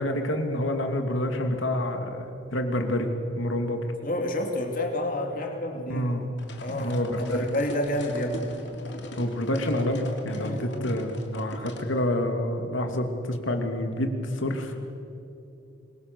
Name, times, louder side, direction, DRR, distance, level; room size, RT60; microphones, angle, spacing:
voice 1, 0.0-3.9 5.9-6.3 6.7-7.4 9.2-14.7, left 1 dB, 75° left, 5 dB, 2.7 m, -28 dB
voice 2, 4.0-6.1 6.6-8.5 10.3-10.9, left 1 dB, 45° left, 3 dB, 2.8 m, -29 dB
sound 1, 6.4-11.9, left 1 dB, 60° left, 3.0 m, -41 dB
26.5 x 22.5 x 6.9 m, 2.8 s
head